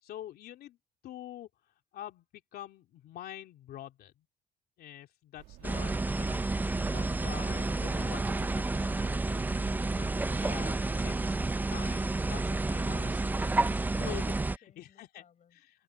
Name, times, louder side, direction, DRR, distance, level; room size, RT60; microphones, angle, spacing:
voice 1, 0.0-0.8 1.0-1.5 1.9-4.3 4.8-9.1 9.9-10.1 10.4-11.3 11.7-13.5 14.0-14.3 14.8-15.2, left 12 dB, 70° left, 3.2 m, -46 dB
sound 1, 5.4-10.4, right 16 dB, 90° right, 1.9 m, -53 dB
sound 2, 5.6-14.6, right 2 dB, 10° right, 0.5 m, -30 dB
voice 2, 13.4-15.8, left 8 dB, 45° left, 6.8 m, -64 dB
cardioid pair, 110°, 17 cm